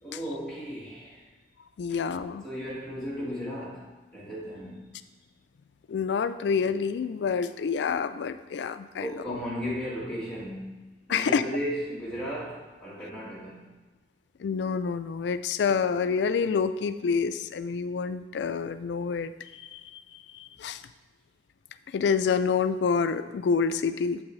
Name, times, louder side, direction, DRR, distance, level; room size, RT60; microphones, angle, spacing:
voice 1, 0.0-1.2 1.9-2.0 2.4-4.9 9.0-13.7, equal, 5° left, -8 dB, 1.8 m, -35 dB
voice 2, 1.8-2.4 5.9-9.4 11.1-11.4 14.4-20.8 21.9-24.2, left 5 dB, 85° left, 12 dB, 0.3 m, -28 dB
7.2 x 6.0 x 3.1 m, 1.2 s
head